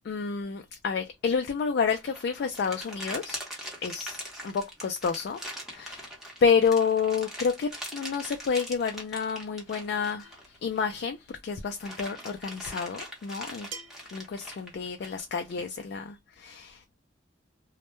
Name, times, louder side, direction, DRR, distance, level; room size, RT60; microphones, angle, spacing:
voice 1, 0.0-3.4 3.8-5.4 5.7-6.1 6.4-13.7 14.1-17.0, left 6 dB, 55° left, 0.3 m, -29 dB
sound 1, 1.8-11.1 11.5-15.7, equal, ahead, 0.7 m, -42 dB
sound 2, 10.2-10.6 12.1-12.2 13.7-14.2, right 5 dB, 85° right, 0.7 m, -44 dB
2.1 x 2.0 x 2.9 m
head